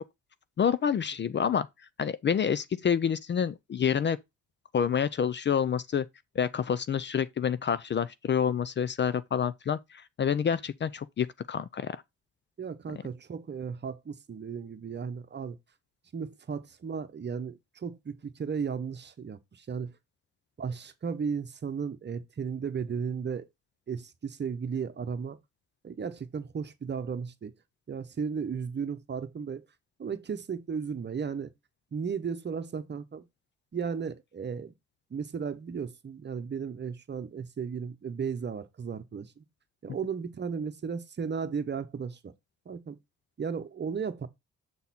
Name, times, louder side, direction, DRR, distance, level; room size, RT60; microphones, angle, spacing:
voice 1, 0.6-1.7 2.0-4.2 4.7-6.1 6.4-12.0, left 7 dB, 40° left, 0.5 m, -28 dB
voice 2, 12.6-15.6 16.1-19.9 20.6-23.5 23.9-25.4 25.8-27.5 27.9-29.6 30.0-31.5 31.9-33.2 33.7-34.7 35.1-39.4 39.8-42.3 42.7-43.0 43.4-44.3, right 6 dB, 35° right, 1.0 m, -35 dB
7.1 x 4.0 x 4.2 m
cardioid pair, 90°, 30 cm